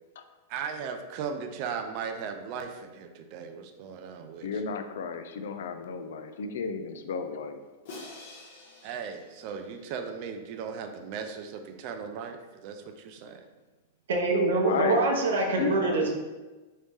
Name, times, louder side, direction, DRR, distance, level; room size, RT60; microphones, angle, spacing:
voice 1, 0.5-4.5 8.8-13.5, right 6 dB, 40° right, 6 dB, 0.4 m, -37 dB
voice 2, 4.4-7.6 14.2-15.0 15.4-16.0, left 5 dB, 80° left, 8 dB, 0.4 m, -33 dB
Crash cymbal, 7.9-10.1, left 2 dB, 55° left, 0.9 m, -47 dB
voice 3, 14.1-16.1, right 2 dB, 85° right, -1 dB, 0.7 m, -24 dB
3.1 x 2.7 x 3.5 m, 1.2 s
supercardioid pair, 155°, 0 cm